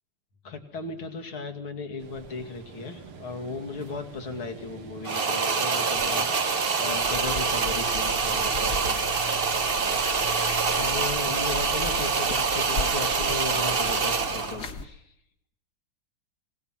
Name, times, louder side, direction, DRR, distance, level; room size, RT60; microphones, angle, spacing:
voice 1, 0.4-9.3 9.8-10.1 10.7-15.1, left 4 dB, 70° left, 4 dB, 3.2 m, -36 dB
sound 1, 2.0-13.1, right 4 dB, 75° right, 2.9 m, -46 dB
sound 2, 5.0-14.6, right 5 dB, 35° right, 1.0 m, -25 dB
sound 3, 6.9-14.8, left 3 dB, 50° left, 2.2 m, -37 dB
26.5 x 19.5 x 5.9 m, 0.76 s
omnidirectional pair, 2.4 m